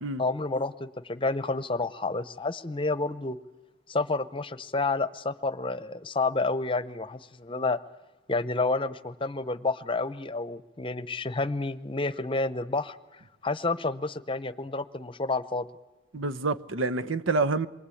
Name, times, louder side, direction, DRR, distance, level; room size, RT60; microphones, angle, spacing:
voice 1, 0.2-3.4 3.9-7.8 8.3-15.7, left 3 dB, 25° left, 0.8 m, -30 dB
voice 2, 16.1-17.7, right 3 dB, 75° right, 1.0 m, -27 dB
28.0 x 23.0 x 8.5 m
head